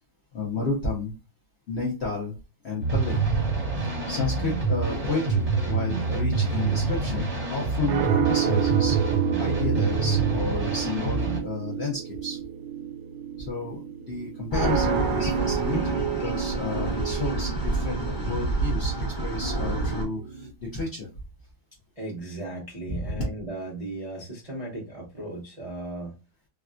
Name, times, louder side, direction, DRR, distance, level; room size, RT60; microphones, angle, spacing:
voice 1, 0.3-1.1 1.7-2.3 2.6-3.4 4.1-9.0 9.4-12.4 13.4-13.8 14.1-21.1 22.9-23.2, left 3 dB, 70° left, -3 dB, 0.6 m, -31 dB
sound 1, 2.8-11.4, right 4 dB, 30° right, 0.8 m, -26 dB
sound 2, 4.7-20.5, right 10 dB, 80° right, 1.4 m, -31 dB
sound 3, 14.5-20.0, right 2 dB, 15° left, 0.8 m, -29 dB
voice 2, 22.0-26.1, right 2 dB, 65° right, -4 dB, 0.3 m, -36 dB
3.4 x 2.3 x 2.4 m, 0.30 s
omnidirectional pair, 2.2 m